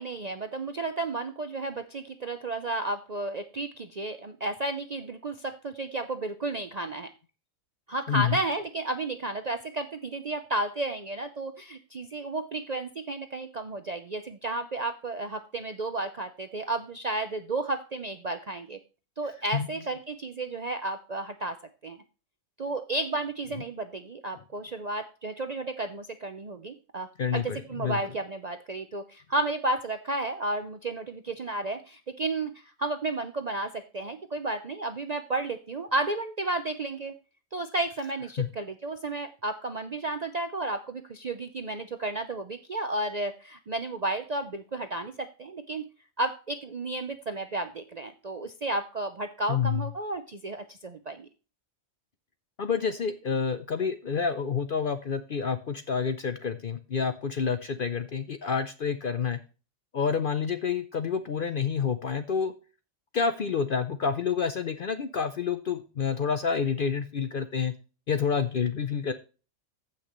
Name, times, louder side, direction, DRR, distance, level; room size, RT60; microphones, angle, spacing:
voice 1, 0.0-7.1 7.9-18.8 19.2-21.6 21.8-22.0 22.6-37.1 37.5-45.8 46.2-51.3, right 2 dB, 45° right, 8 dB, 0.5 m, -32 dB
voice 2, 8.1-8.4 19.5-19.7 27.2-28.0 38.4-38.5 49.5-49.8 52.6-59.4 59.9-62.5 63.1-67.7 68.1-69.1, left 6 dB, 55° left, 10 dB, 0.6 m, -28 dB
15.0 x 5.8 x 3.0 m, 0.34 s
omnidirectional pair, 1.4 m